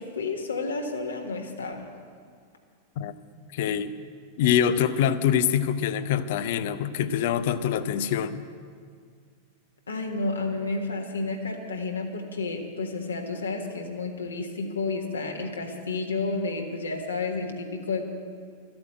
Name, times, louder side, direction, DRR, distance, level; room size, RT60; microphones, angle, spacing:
voice 1, 0.0-1.9 9.9-18.1, left 3 dB, 75° left, 1 dB, 1.5 m, -31 dB
voice 2, 3.5-3.9 4.4-8.4, left 9 dB, 50° left, 13 dB, 0.6 m, -24 dB
13.5 x 8.7 x 8.7 m, 2.1 s
figure-of-eight pair, 90°, 0 cm